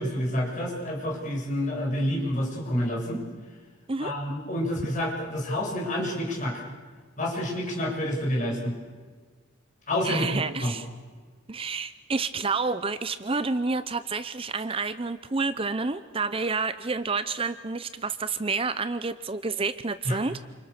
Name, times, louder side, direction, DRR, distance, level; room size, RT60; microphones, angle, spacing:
voice 1, 0.0-3.2 4.0-6.6 7.2-8.7 9.9-10.7 20.0-20.2, left 1 dB, 40° left, -2 dB, 7.4 m, -28 dB
voice 2, 10.0-10.9 11.5-20.5, right 4 dB, 30° right, 13 dB, 0.7 m, -29 dB
29.0 x 27.5 x 6.8 m, 1.5 s
head